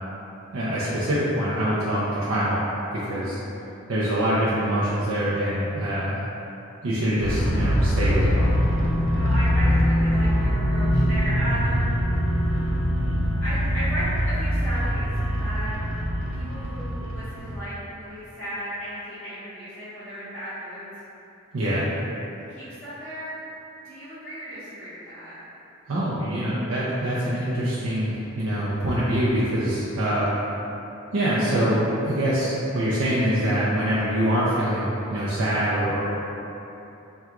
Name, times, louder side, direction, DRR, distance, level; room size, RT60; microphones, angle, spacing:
voice 1, 0.5-3.4 3.9-6.2 6.8-8.6 21.5-21.8 25.9-30.3 31.1-36.0, right 1 dB, 85° right, -8 dB, 0.6 m, -24 dB
sound 1, 7.2-17.6, equal, 70° left, 0.7 m, -23 dB
voice 2, 9.1-12.5 13.4-20.9 21.7-21.8 22.5-23.4 23.8-25.3, equal, 5° left, -20 dB, 1.1 m, -35 dB
3.5 x 2.3 x 4.4 m, 3.0 s
head